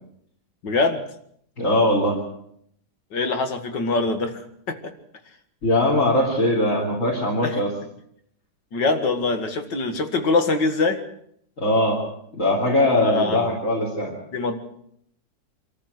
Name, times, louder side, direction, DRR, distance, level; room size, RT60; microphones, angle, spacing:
voice 1, 0.6-1.0 3.1-4.4 4.7-4.9 7.4-7.6 8.7-11.0 13.0-13.5 14.3-14.6, left 3 dB, 75° left, 7 dB, 2.5 m, -23 dB
voice 2, 1.6-2.2 5.6-7.7 11.6-12.0 12.3-14.1, left 1 dB, 45° left, 0 dB, 3.5 m, -21 dB
25.5 x 14.0 x 8.0 m, 0.70 s
omnidirectional pair, 1.9 m